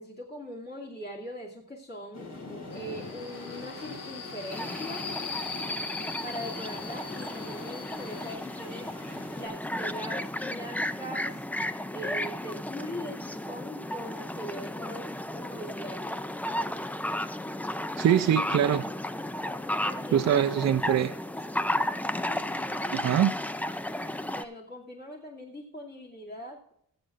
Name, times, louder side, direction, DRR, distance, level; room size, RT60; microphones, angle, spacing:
voice 1, 0.0-2.3 2.7-5.1 6.2-8.9 9.3-11.4 11.9-16.2 19.8-21.0 22.2-22.9 24.3-26.6, equal, 30° left, -4 dB, 2.4 m, -41 dB
sound 1, 2.1-9.5, left 2 dB, 50° left, 2.7 m, -45 dB
Subway metro underground, 2.7-8.3, left 4 dB, 85° left, 2.5 m, -39 dB
sound 2, 4.5-24.4, left 1 dB, 5° left, 0.3 m, -34 dB
voice 2, 18.0-18.8 20.1-21.1 22.9-23.3, right 9 dB, 55° right, 6 dB, 0.5 m, -23 dB
22.0 x 7.8 x 2.5 m, 0.69 s
wide cardioid pair, 175°, 33 cm